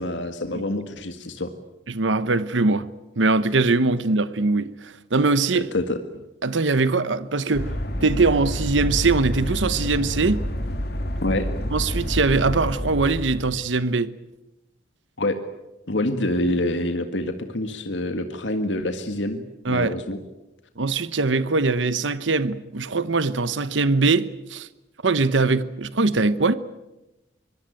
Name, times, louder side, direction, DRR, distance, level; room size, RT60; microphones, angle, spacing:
voice 1, 0.0-1.5 5.5-6.0 11.2-11.5 15.2-15.4 15.9-20.2, left 1 dB, 80° left, 1.9 m, -26 dB
voice 2, 1.9-2.9 3.2-5.7 6.4-7.7 8.0-10.4 11.7-14.1 19.6-19.9 20.8-24.7 25.0-26.5, right 3 dB, 85° right, 1.0 m, -22 dB
sound 1, 7.5-13.6, equal, 60° left, 2.2 m, -28 dB
24.5 x 23.0 x 9.1 m
head